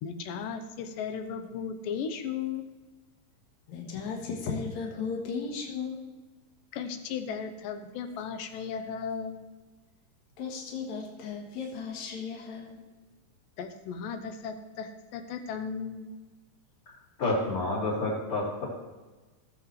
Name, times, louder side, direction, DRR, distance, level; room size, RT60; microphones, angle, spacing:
voice 1, 0.0-2.6 6.7-9.4 13.6-16.1, left 6 dB, 90° left, 9 dB, 2.5 m, -36 dB
voice 2, 3.7-6.0 10.4-12.8, left 5 dB, 65° left, 0 dB, 2.6 m, -35 dB
voice 3, 17.2-18.6, left 2 dB, 40° left, -13 dB, 4.1 m, -29 dB
17.0 x 7.7 x 3.2 m, 1.2 s
omnidirectional pair, 3.8 m